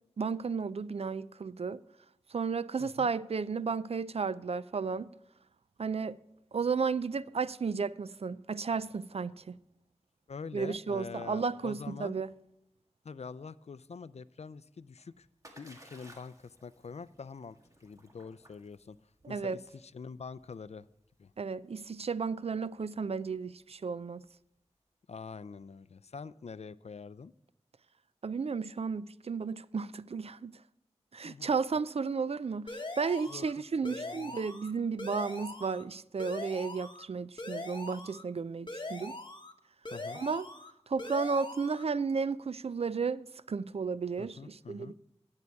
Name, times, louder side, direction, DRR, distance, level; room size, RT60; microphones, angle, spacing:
voice 1, 0.2-1.8 2.3-5.1 5.8-6.2 6.5-9.6 10.5-12.3 19.2-19.6 21.4-24.2 28.2-30.5 31.1-39.2 40.1-40.5 40.9-44.9, right 5 dB, 60° right, 0.4 m, -33 dB
voice 2, 10.3-12.2 13.0-15.3 15.6-17.6 17.8-19.0 19.3-20.9 21.2-21.3 25.1-27.3 31.2-31.5 33.3-33.5 33.8-34.4 39.9-40.2 44.2-44.9, left 5 dB, 65° left, 0.4 m, -45 dB
Splash splatter, 14.7-24.6, right 1 dB, 30° right, 1.8 m, -60 dB
sound 1, 32.7-33.5 33.8-34.7 35.0-35.8 36.2-37.0 37.4-38.2 38.7-39.5 39.8-40.7 41.0-41.8, left 2 dB, 40° left, 1.1 m, -42 dB
11.0 x 8.1 x 4.6 m
wide cardioid pair, 60°, 12 cm